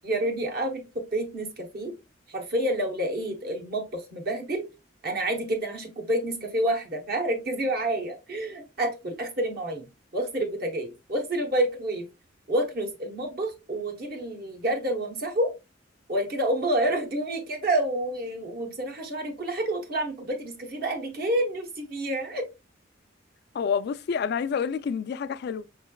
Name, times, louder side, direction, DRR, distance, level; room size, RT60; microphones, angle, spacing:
voice 1, 0.0-1.9 2.3-4.6 5.0-9.9 10.1-12.1 12.5-15.5 16.1-22.5, right 1 dB, 55° right, 0.9 m, -28 dB
voice 2, 23.5-25.7, left 6 dB, 60° left, 0.3 m, -28 dB
5.6 x 3.2 x 2.3 m
head